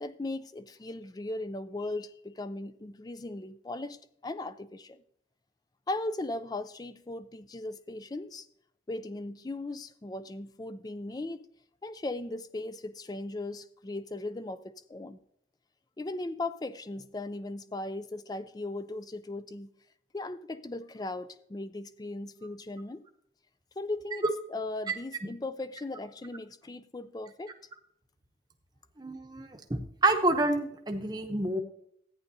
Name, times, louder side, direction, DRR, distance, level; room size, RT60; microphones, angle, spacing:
voice 1, 0.0-5.0 5.9-8.5 8.9-11.5 11.8-15.2 16.0-19.7 20.1-23.0 23.8-27.6, left 2 dB, 20° left, 0.4 m, -38 dB
voice 2, 29.0-31.6, right 2 dB, 20° right, 0.8 m, -28 dB
14.0 x 9.5 x 2.7 m
head